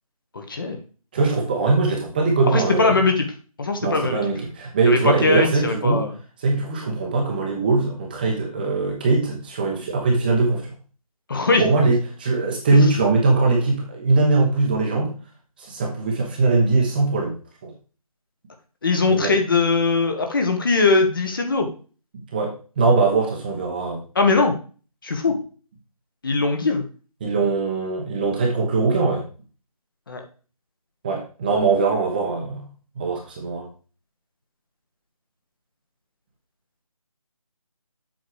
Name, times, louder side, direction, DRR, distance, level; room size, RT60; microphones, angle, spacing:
voice 1, 0.3-0.8 2.4-3.3 3.6-4.2 4.8-6.1 11.3-11.6 18.8-21.7 24.1-24.5 25.0-25.4 26.2-26.8 30.1-30.2, left 3 dB, 35° left, 4 dB, 1.4 m, -20 dB
voice 2, 1.1-3.0 3.8-6.1 6.4-10.7 11.6-15.1 15.6-17.3 17.6-17.7 19.1-19.3 22.3-24.0 27.2-29.2 31.0-32.6 33.0-33.6, right 3 dB, 15° right, -1 dB, 1.1 m, -21 dB
7.7 x 5.2 x 4.9 m, 0.37 s
figure-of-eight pair, 165°, 19 cm